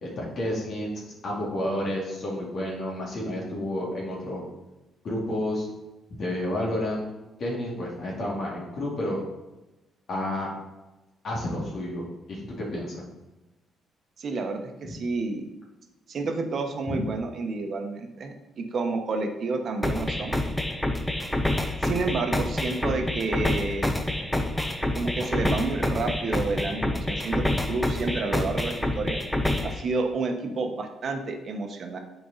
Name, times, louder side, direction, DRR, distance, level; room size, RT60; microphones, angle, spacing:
voice 1, 0.0-0.9 1.2-4.4 5.0-5.7 6.1-7.1 7.4-9.2 10.1-10.5 11.2-13.0 14.8-14.9 16.9-17.0, left 1 dB, 60° left, -4 dB, 2.2 m, -30 dB
voice 2, 14.2-15.4 16.1-20.4 21.8-24.0 24.9-29.2 29.6-32.0, right 3 dB, 55° right, 4 dB, 1.1 m, -30 dB
sound 1, 19.8-29.8, left 1 dB, 5° left, 0.8 m, -27 dB
8.1 x 4.6 x 4.1 m, 1.0 s
cardioid pair, 90°, 0 cm